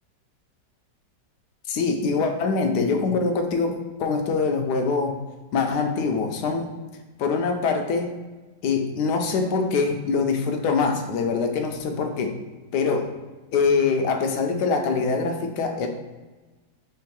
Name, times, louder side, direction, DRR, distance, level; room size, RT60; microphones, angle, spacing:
voice 1, 1.7-5.2 5.5-6.7 7.2-8.1 8.6-12.3 12.7-13.0 13.5-15.9, left 4 dB, 75° left, 4 dB, 1.1 m, -24 dB
3.5 x 3.1 x 4.6 m, 1.2 s
omnidirectional pair, 1.9 m